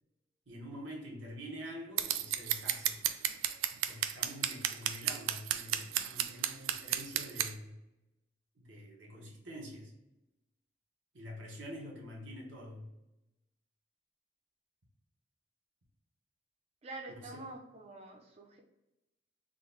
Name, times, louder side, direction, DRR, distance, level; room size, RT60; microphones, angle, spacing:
voice 1, 0.5-3.0 3.9-7.8 8.6-9.9 11.1-12.9 17.1-17.4, equal, 75° right, -2 dB, 1.0 m, -46 dB
Scissors, 2.0-7.5, right 11 dB, 90° right, 0.3 m, -32 dB
voice 2, 16.8-18.6, right 2 dB, 30° right, 0 dB, 0.5 m, -46 dB
3.8 x 2.2 x 3.8 m, 0.94 s
head